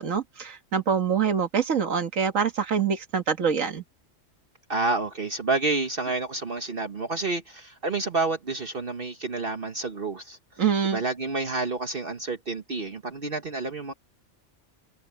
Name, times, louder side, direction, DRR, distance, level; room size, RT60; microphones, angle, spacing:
voice 1, 0.0-3.8 10.6-11.0, right 7 dB, 80° right, 1.9 m, -25 dB
voice 2, 4.7-10.4 10.8-13.9, right 3 dB, 45° right, 1.4 m, -29 dB
omnidirectional pair, 1.3 m